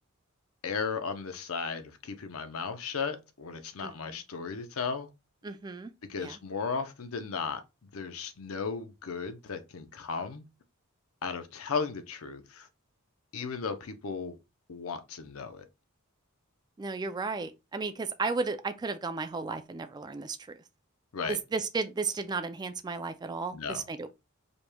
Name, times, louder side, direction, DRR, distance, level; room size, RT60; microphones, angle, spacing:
voice 1, 0.6-5.1 6.0-7.6 7.9-10.4 11.2-12.7 13.3-14.4 14.7-15.7 21.1-21.4 23.5-23.8, left 5 dB, 75° left, 0.6 m, -35 dB
voice 2, 3.8-4.2 5.4-5.9 6.2-6.4 16.8-20.6 21.3-24.1, right 4 dB, 20° right, 0.3 m, -34 dB
5.0 x 3.1 x 2.2 m
head